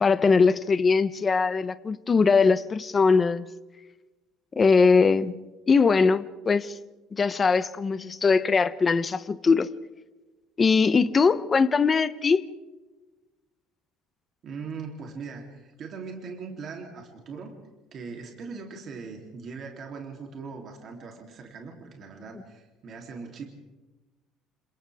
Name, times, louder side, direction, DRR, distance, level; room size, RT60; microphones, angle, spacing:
voice 1, 0.0-3.4 4.6-5.4 5.7-6.8 7.1-9.7 10.6-12.5, left 4 dB, 20° left, 0.8 m, -21 dB
voice 2, 14.4-17.5 17.9-23.5, right 5 dB, 35° right, 3.2 m, -40 dB
29.5 x 27.5 x 3.5 m
cardioid pair, 170°, 0 cm